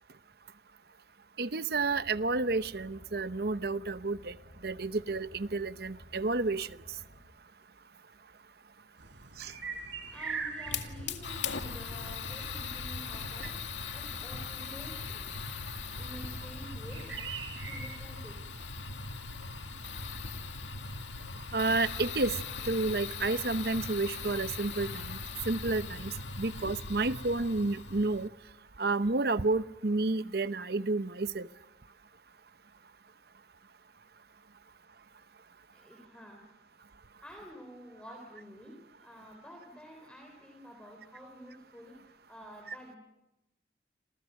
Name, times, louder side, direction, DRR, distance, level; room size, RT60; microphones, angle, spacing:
voice 1, 1.4-4.4 4.6-6.7 9.4-9.5 13.4-13.5 21.5-22.4 22.6-25.2 25.5-28.3 28.8-31.5, right 3 dB, 55° right, 13 dB, 0.9 m, -30 dB
Car, 1.7-7.2, equal, 40° right, 7.7 m, -55 dB
sound 1, 9.0-18.0, right 5 dB, 85° right, 5.2 m, -44 dB
voice 2, 10.1-13.6 13.9-15.2 15.9-17.2 17.6-18.4 35.7-36.5 37.2-43.0, equal, 5° left, 1 dB, 4.1 m, -49 dB
Fire, 10.7-28.3, left 4 dB, 80° left, 2.0 m, -39 dB
29.0 x 27.5 x 6.5 m, 0.96 s
head